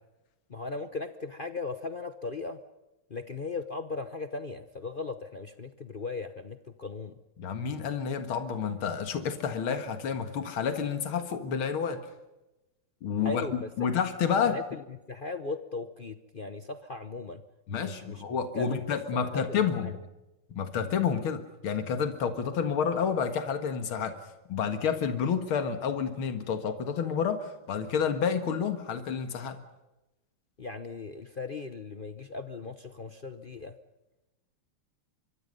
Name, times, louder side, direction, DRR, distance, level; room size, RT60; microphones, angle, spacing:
voice 1, 0.5-2.6 3.1-7.1 13.2-13.5 13.8-13.9 14.5-17.4 17.8-18.2 18.5-20.0 30.6-33.8, left 3 dB, 50° left, 9 dB, 0.6 m, -38 dB
voice 2, 7.4-12.0 13.0-13.4 13.8-14.6 17.7-20.0 20.5-24.2 24.5-29.6, left 7 dB, 75° left, 8 dB, 2.5 m, -29 dB
24.5 x 24.0 x 5.4 m, 1.0 s
omnidirectional pair, 2.3 m